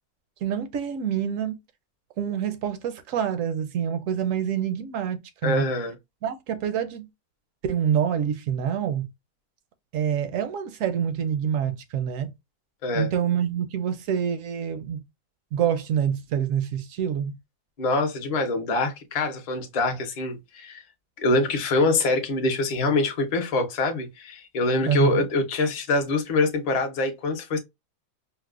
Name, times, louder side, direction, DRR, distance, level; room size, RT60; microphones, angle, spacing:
voice 1, 0.4-1.6 2.2-5.7 6.2-7.1 7.6-9.1 9.9-12.3 12.9-15.0 15.5-17.3 24.9-25.2, right 8 dB, 70° right, 0.8 m, -26 dB
voice 2, 5.4-5.9 12.8-13.1 17.8-20.8 21.2-27.6, left 2 dB, 40° left, 0.5 m, -24 dB
4.6 x 2.0 x 2.3 m
omnidirectional pair, 1.6 m